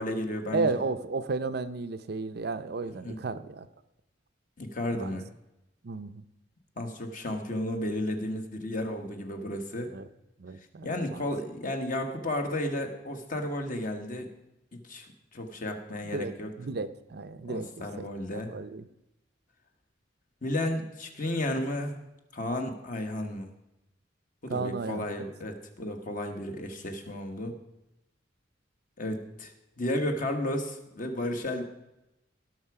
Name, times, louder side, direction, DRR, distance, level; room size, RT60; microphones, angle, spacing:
voice 1, 0.0-0.7 3.0-3.2 4.6-5.3 6.8-9.9 10.8-14.3 14.7-16.5 17.4-18.5 20.4-21.9 22.3-23.5 24.4-27.5 29.0-29.5 29.8-31.7, left 1 dB, 45° left, 4 dB, 1.4 m, -33 dB
voice 2, 0.5-3.7 4.9-5.2 5.8-6.2 9.9-10.1 10.4-11.2 16.1-17.7 18.0-18.1 18.3-18.9 24.5-25.1, right 3 dB, 55° right, 11 dB, 0.5 m, -33 dB
17.5 x 6.2 x 4.8 m, 0.92 s
head